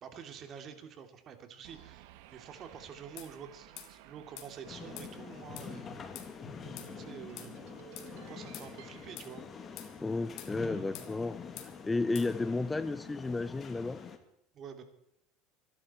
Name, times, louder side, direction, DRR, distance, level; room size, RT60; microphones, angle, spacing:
voice 1, 0.0-6.0 7.0-7.7 8.1-9.9 10.6-11.1 14.5-14.8, right 7 dB, 45° right, 7 dB, 2.7 m, -48 dB
sound 1, 1.6-10.2, right 14 dB, 75° right, 1.2 m, -56 dB
sound 2, 3.2-3.3 3.8-3.9 4.4-4.5 5.0-5.1 5.6-5.7 6.2-6.3 6.8-6.9 7.4-7.5 8.0-8.1 8.5-8.7 9.2-9.3 9.8-9.9 10.4-10.5 10.9-11.1 11.6-11.7 12.2-12.3, left 11 dB, 60° left, 2.6 m, -46 dB
sound 3, 4.7-14.2, left 6 dB, 35° left, 2.0 m, -46 dB
voice 2, 10.0-11.4 11.8-14.0, left 3 dB, 15° left, 16 dB, 0.6 m, -32 dB
25.0 x 11.0 x 4.4 m, 0.76 s
supercardioid pair, 105°, 0 cm